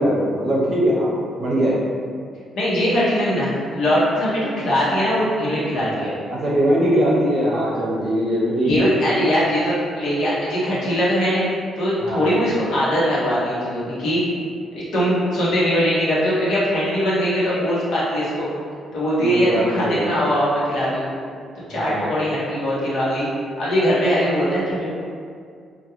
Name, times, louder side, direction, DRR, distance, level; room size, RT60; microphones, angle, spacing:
voice 1, 0.0-1.8 6.3-8.8 12.0-12.4 19.2-20.1 21.7-22.1, equal, 50° right, -5 dB, 0.7 m, -21 dB
voice 2, 2.5-6.1 8.6-11.5 11.8-14.2 14.7-18.5 18.9-21.1 21.7-23.3 23.6-24.9, equal, 75° left, -9 dB, 0.8 m, -21 dB
2.2 x 2.2 x 2.9 m, 2.2 s
cardioid pair, 90°, 0 cm